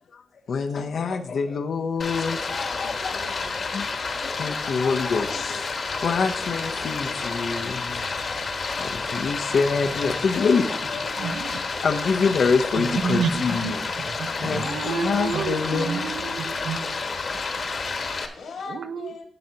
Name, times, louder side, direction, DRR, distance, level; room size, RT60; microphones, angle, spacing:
voice 1, 0.5-3.4 3.7-3.9 4.2-5.7 6.0-8.1 8.3-10.7 11.8-13.8 14.3-15.9, left 5 dB, 65° left, 6 dB, 0.6 m, -26 dB
Stream, 2.0-18.3, left 4 dB, 50° left, 1.2 m, -30 dB
voice 2, 2.5-3.8 6.3-7.3 9.7-11.2 14.1-15.6 16.6-19.3, left 4 dB, 80° left, 2 dB, 1.9 m, -42 dB
voice 3, 11.2-11.6 12.8-13.8 14.0-17.0 18.7-19.1, right 6 dB, 90° right, 10 dB, 0.7 m, -29 dB
12.0 x 7.8 x 2.8 m, 0.63 s
wide cardioid pair, 120°, 0 cm